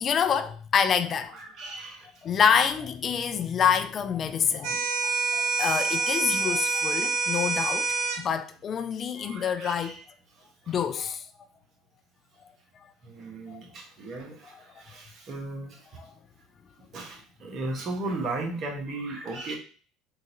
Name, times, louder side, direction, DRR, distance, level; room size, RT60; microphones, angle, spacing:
voice 1, 0.0-1.4 2.2-7.9 8.2-9.9 10.7-11.3 13.5-13.6 16.0-16.1, left 7 dB, 45° left, 0.3 m, -27 dB
voice 2, 1.3-2.1 9.2-10.0 10.7-10.8 13.0-15.8 16.9-19.6, right 2 dB, 50° right, 1.2 m, -36 dB
sound 1, 4.6-8.2, right 4 dB, 70° right, 0.5 m, -27 dB
3.7 x 2.5 x 2.9 m
hypercardioid pair, 70°, 0 cm